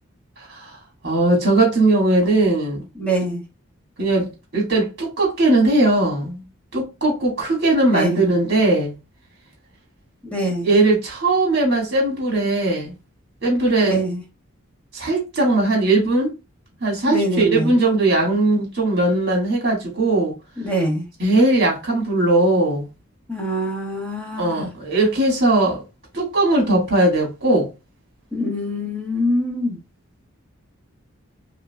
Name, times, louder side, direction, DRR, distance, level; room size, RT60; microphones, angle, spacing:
voice 1, 0.4-0.7 1.0-2.8 4.0-6.4 6.7-8.9 10.6-12.9 13.4-14.0 14.9-16.3 16.8-20.3 21.2-22.8 24.4-25.8 26.1-27.7, right 2 dB, 50° right, 1.8 m, -19 dB
voice 2, 2.9-3.4 7.9-8.3 10.2-10.7 13.8-14.2 17.1-17.7 20.6-21.1 23.3-24.7 28.3-29.8, equal, 5° left, 1.2 m, -24 dB
3.7 x 2.9 x 2.3 m
head